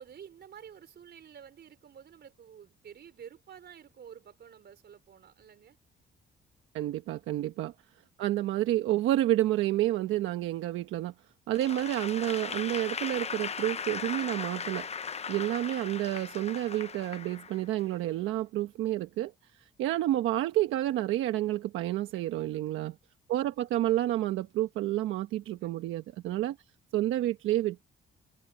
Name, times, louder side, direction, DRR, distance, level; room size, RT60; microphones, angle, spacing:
voice 1, 0.0-5.8 7.1-7.5 22.1-22.6 25.6-25.9, right 8 dB, 55° right, 4.4 m, -51 dB
voice 2, 6.7-7.7 8.2-11.1 11.5-14.9 15.3-19.3 19.8-22.9 23.3-26.6 26.9-27.8, right 14 dB, 90° right, 1.2 m, -29 dB
Applause / Crowd, 11.5-17.9, left 6 dB, 35° left, 0.7 m, -38 dB
cardioid pair, 90°, 20 cm